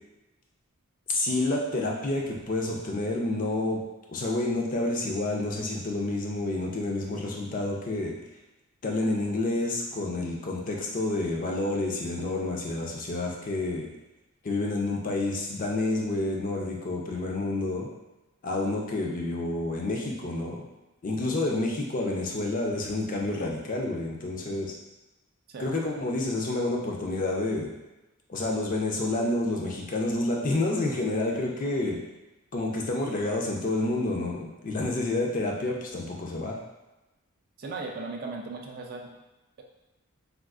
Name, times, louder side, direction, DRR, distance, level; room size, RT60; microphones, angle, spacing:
voice 1, 1.1-3.8 4.1-8.2 8.8-13.9 14.4-17.9 18.4-20.6 21.0-24.7 25.6-27.7 28.3-32.0 32.5-36.6, left 2 dB, 40° left, -1 dB, 0.4 m, -29 dB
voice 2, 37.6-39.2, right 3 dB, 45° right, 1 dB, 0.3 m, -37 dB
3.6 x 2.3 x 2.4 m, 1.0 s
head